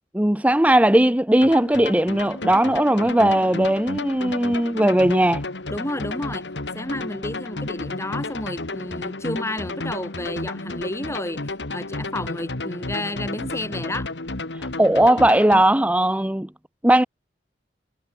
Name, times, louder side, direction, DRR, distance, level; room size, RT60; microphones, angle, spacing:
voice 1, 0.1-5.4 14.8-16.5 16.8-17.0, right 1 dB, 10° right, 0.8 m, -18 dB
sound 1, 1.4-15.6, left 2 dB, 90° left, 2.2 m, -32 dB
voice 2, 5.7-6.4 6.7-14.1, left 1 dB, 15° left, 3.7 m, -31 dB
head